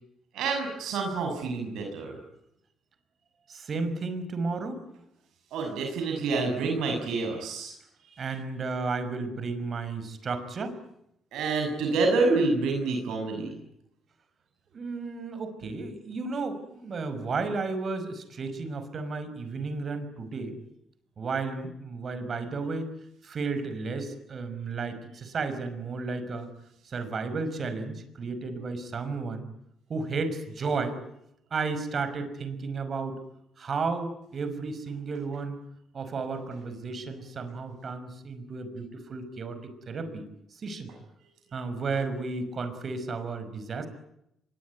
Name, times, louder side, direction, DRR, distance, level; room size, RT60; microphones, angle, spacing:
voice 1, 0.3-2.2 5.5-7.7 11.3-13.5, right 3 dB, 85° right, 3 dB, 6.6 m, -27 dB
voice 2, 3.5-4.8 8.2-10.8 14.7-20.6 21.2-22.9 23.2-26.5 26.9-29.5 29.9-31.0 31.5-33.2 33.6-35.6 35.9-40.3 40.5-40.9 41.5-43.9, right 4 dB, 50° right, 10 dB, 5.6 m, -33 dB
26.0 x 22.5 x 9.7 m, 0.80 s
cardioid pair, 90°, 0 cm